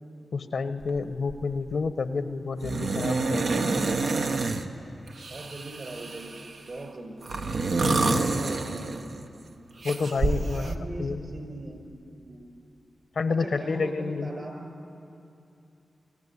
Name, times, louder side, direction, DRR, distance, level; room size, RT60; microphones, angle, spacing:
voice 1, 0.3-3.9 7.8-8.3 9.8-11.2 13.1-14.3, left 4 dB, 75° left, 11 dB, 0.9 m, -30 dB
sound 1, 0.8-1.0 1.3-1.7 2.6-4.7 5.2-6.6 7.2-9.3 9.8-10.7, right 3 dB, 75° right, 1.1 m, -28 dB
voice 2, 5.3-6.4 6.7-7.2 7.7-9.0 10.5-11.8 12.3-12.4 13.4-14.7, right 2 dB, 50° right, 4 dB, 5.0 m, -39 dB
24.0 x 13.5 x 9.7 m, 2.7 s
cardioid pair, 60°, 0 cm